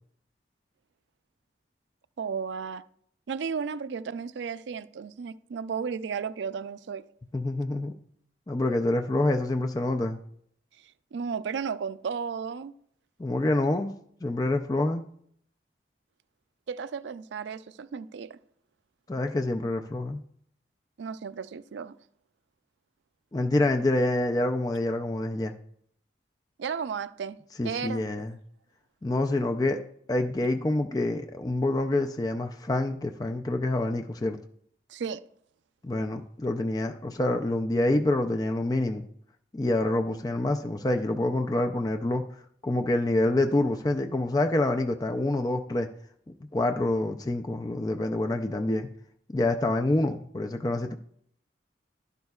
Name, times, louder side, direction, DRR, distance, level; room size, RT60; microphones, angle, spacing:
voice 1, 2.2-2.8 3.3-7.0 10.8-12.7 16.7-18.4 21.0-22.0 26.6-27.4 27.6-28.0 34.9-35.2, right 6 dB, 80° right, 0.4 m, -34 dB
voice 2, 7.3-7.9 8.5-10.2 13.2-13.9 14.2-15.1 19.1-20.2 23.3-25.5 27.6-28.3 29.0-29.8 30.1-34.4 35.8-39.0 39.5-42.2 42.6-45.9 46.5-48.9 49.3-50.9, left 2 dB, 20° left, 0.4 m, -27 dB
11.5 x 10.5 x 2.3 m
head